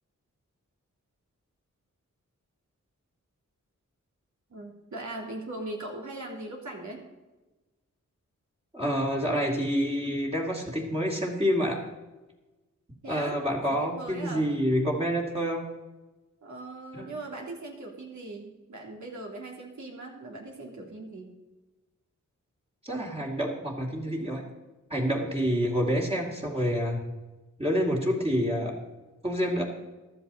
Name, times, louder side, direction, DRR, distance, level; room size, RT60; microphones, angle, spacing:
voice 1, 4.5-7.0 13.0-13.4 13.9-14.5 16.4-21.3, right 2 dB, 70° right, 0 dB, 2.9 m, -39 dB
voice 2, 8.7-11.8 13.1-15.7 16.9-17.1 22.8-24.5 24.9-27.0 27.6-28.8 29.2-29.6, equal, 20° right, -1 dB, 2.4 m, -28 dB
14.5 x 12.5 x 4.0 m, 1.1 s
wide cardioid pair, 100°, 30 cm